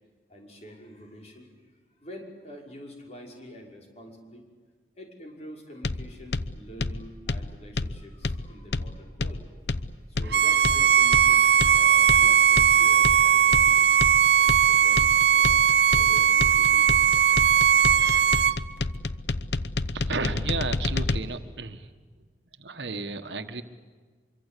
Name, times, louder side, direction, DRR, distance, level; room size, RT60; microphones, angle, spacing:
voice 1, 0.3-1.5 2.0-4.5 5.0-9.5 10.1-15.0 15.3-17.2, equal, 40° left, 1 dB, 5.7 m, -46 dB
sound 1, 5.8-21.2, left 3 dB, 75° left, 0.9 m, -30 dB
Bowed string instrument, 10.3-18.6, right 8 dB, 70° right, 0.9 m, -19 dB
voice 2, 19.9-21.9 22.6-23.6, right 4 dB, 85° right, 8 dB, 1.5 m, -33 dB
25.0 x 24.0 x 8.4 m, 1.5 s
head